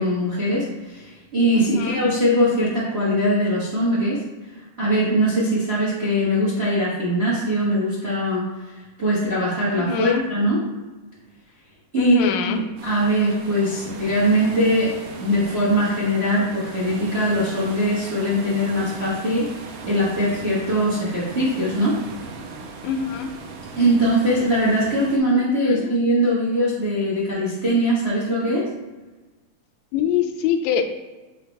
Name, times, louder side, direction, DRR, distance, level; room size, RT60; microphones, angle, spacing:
voice 1, 0.0-4.2 4.8-8.5 9.0-10.6 11.9-19.5 19.8-22.0 23.8-28.6, equal, 60° right, -7 dB, 0.6 m, -21 dB
voice 2, 1.5-2.0 9.8-10.2 12.0-12.6 22.8-23.3 25.6-25.9 29.9-30.9, left 7 dB, 80° left, 6 dB, 1.8 m, -24 dB
sound 1, 12.8-25.2, right 3 dB, 80° right, 2.2 m, -38 dB
7.0 x 3.0 x 4.5 m, 1.2 s
omnidirectional pair, 3.6 m